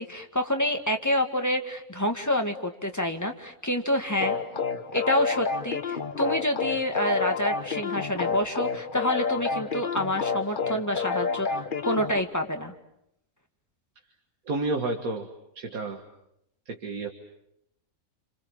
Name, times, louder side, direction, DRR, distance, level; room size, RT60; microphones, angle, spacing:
voice 1, 0.0-4.4 4.9-12.7, left 1 dB, 10° left, 4 dB, 1.9 m, -28 dB
sound 1, 4.2-12.2, left 5 dB, 40° left, 1.3 m, -29 dB
voice 2, 14.5-15.3 15.6-16.0 16.7-17.1, right 2 dB, 80° right, 3 dB, 2.2 m, -30 dB
28.5 x 27.0 x 7.5 m, 0.78 s
omnidirectional pair, 1.5 m